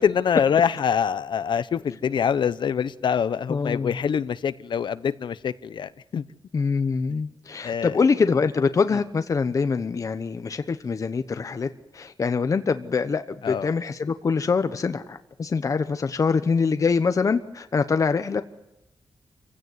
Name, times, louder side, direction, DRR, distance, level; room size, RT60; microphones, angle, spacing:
voice 1, 0.0-6.2 7.6-8.1 8.9-9.0 13.4-13.7, left 7 dB, 70° left, 0.9 m, -25 dB
voice 2, 3.5-3.9 6.5-11.7 11.9-18.4, left 5 dB, 40° left, 1.0 m, -24 dB
27.0 x 16.5 x 9.5 m
wide cardioid pair, 135°, 8 cm